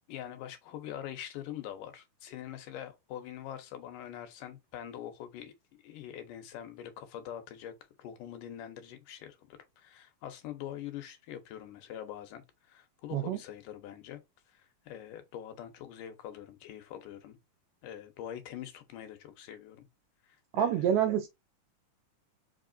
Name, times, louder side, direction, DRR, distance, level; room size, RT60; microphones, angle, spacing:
voice 1, 0.1-14.2 14.5-17.4 17.8-19.9 20.3-20.9, left 10 dB, 80° left, 2.5 m, -44 dB
voice 2, 20.5-21.3, right 9 dB, 80° right, 1.6 m, -27 dB
4.9 x 3.6 x 2.5 m
omnidirectional pair, 3.8 m